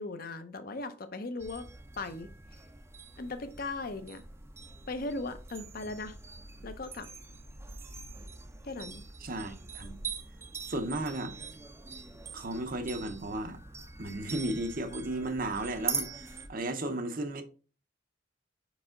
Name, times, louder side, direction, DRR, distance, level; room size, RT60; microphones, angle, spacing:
voice 1, 0.0-1.7 2.0-2.3 3.2-4.2 4.9-6.2 6.6-7.1 8.6-9.0, left 2 dB, 50° left, 0.7 m, -38 dB
sound 1, 1.4-16.5, right 4 dB, 15° right, 0.5 m, -43 dB
voice 2, 9.2-10.0 10.7-11.4 12.3-13.6 14.0-17.4, right 1 dB, 45° right, 0.8 m, -34 dB
5.3 x 4.9 x 3.7 m
head